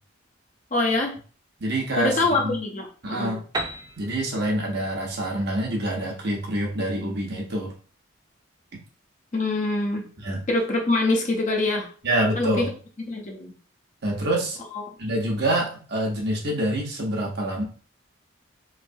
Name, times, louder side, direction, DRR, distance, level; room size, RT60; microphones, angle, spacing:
voice 1, 0.7-1.1 2.0-3.3 9.3-10.1 10.5-11.9 12.4-12.7 13.1-13.5 14.7-14.9, left 2 dB, 35° left, 1 dB, 0.6 m, -24 dB
voice 2, 1.6-2.5 3.0-3.5 4.0-7.7 10.2-10.4 12.0-12.7 14.0-14.6 15.0-17.6, right 1 dB, 50° right, -1 dB, 0.9 m, -26 dB
Piano, 3.5-7.2, right 2 dB, 20° right, 0.3 m, -37 dB
3.2 x 3.2 x 2.6 m, 0.40 s
head